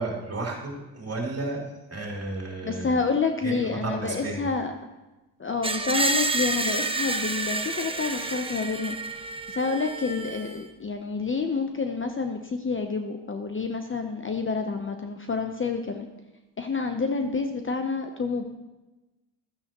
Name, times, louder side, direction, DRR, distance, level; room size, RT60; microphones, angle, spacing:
voice 1, 0.0-1.6 1.9-3.0 3.4-4.5, right 2 dB, 30° right, -1 dB, 2.9 m, -32 dB
voice 2, 2.6-4.7 5.4-16.1 16.6-18.4, left 4 dB, 25° left, 5 dB, 0.8 m, -28 dB
Screech, 5.6-10.6, right 2 dB, 10° right, 0.8 m, -29 dB
12.5 x 9.5 x 3.0 m, 1.1 s
supercardioid pair, 70°, 47 cm